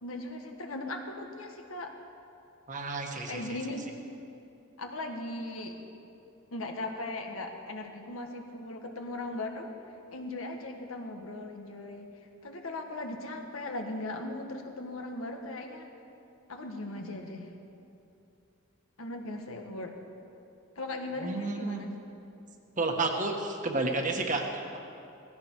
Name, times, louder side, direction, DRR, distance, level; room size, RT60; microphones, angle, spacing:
voice 1, 0.0-1.9 3.3-3.9 4.8-5.8 6.5-9.7 10.1-12.1 12.4-15.9 16.5-17.5 19.0-20.0 20.8-21.9, left 2 dB, 85° left, 3 dB, 1.6 m, -38 dB
voice 2, 2.7-3.4 21.2-21.9 22.8-24.8, right 2 dB, 40° right, 3 dB, 1.5 m, -31 dB
17.5 x 15.5 x 4.8 m, 2.7 s
head